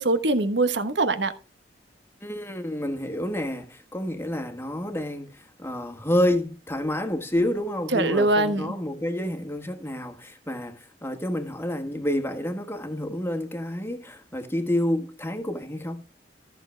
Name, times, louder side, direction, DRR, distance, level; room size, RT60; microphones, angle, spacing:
voice 1, 0.0-1.3 7.9-8.7, right 2 dB, 80° right, 1.2 m, -23 dB
voice 2, 2.2-5.3 5.6-16.0, left 1 dB, 15° left, 1.4 m, -29 dB
14.0 x 6.8 x 3.3 m
head